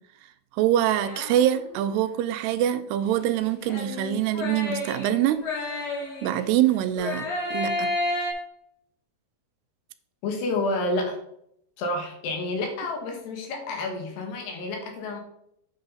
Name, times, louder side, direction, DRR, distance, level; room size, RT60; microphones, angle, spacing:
voice 1, 0.5-5.8 6.2-7.9, right 11 dB, 85° right, 2.7 m, -24 dB
sound 1, 1.0-1.8 3.7-6.6 7.0-8.3, left 2 dB, 45° left, 2.9 m, -31 dB
voice 2, 10.2-11.2 11.8-15.2, left 2 dB, 80° left, 3.9 m, -29 dB
9.1 x 6.6 x 4.0 m
omnidirectional pair, 4.7 m